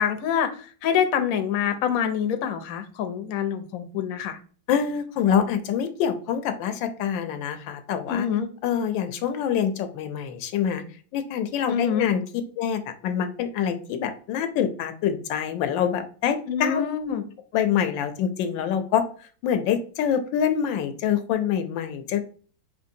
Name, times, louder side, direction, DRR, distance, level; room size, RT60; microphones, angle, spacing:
voice 1, 0.0-4.4 8.1-8.5 11.7-12.1 16.5-17.2, left 8 dB, 65° left, 8 dB, 0.9 m, -26 dB
voice 2, 4.7-8.3 8.6-10.8 11.1-12.2 12.6-16.8 17.5-19.0 19.4-22.2, left 8 dB, 85° left, 8 dB, 1.3 m, -25 dB
5.2 x 3.1 x 2.6 m, 0.41 s
omnidirectional pair, 2.0 m